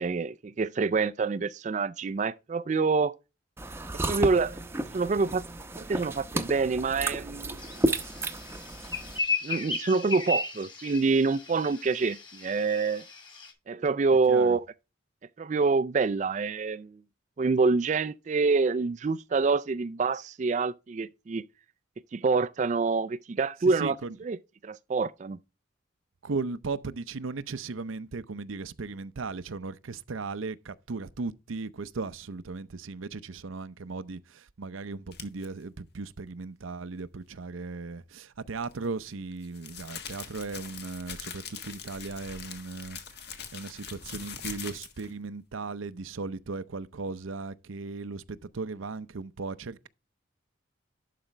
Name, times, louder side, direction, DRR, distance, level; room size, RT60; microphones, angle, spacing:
voice 1, 0.0-3.2 4.1-4.6 4.9-5.4 5.8-7.9 9.4-13.1 13.7-14.6 15.4-17.0 17.4-21.4 22.1-23.9 24.2-24.4 24.6-25.4, right 4 dB, 35° right, 0.3 m, -26 dB
sound 1, 3.6-9.2, right 1 dB, 10° right, 0.7 m, -32 dB
sound 2, 7.6-13.5, left 3 dB, 25° left, 2.1 m, -35 dB
voice 2, 14.3-14.6 23.6-24.2 26.2-43.0 43.5-49.9, right 3 dB, 85° right, 0.7 m, -37 dB
sound 3, 35.1-35.5 38.6-45.1, left 6 dB, 55° left, 1.6 m, -42 dB
11.5 x 5.0 x 3.2 m
head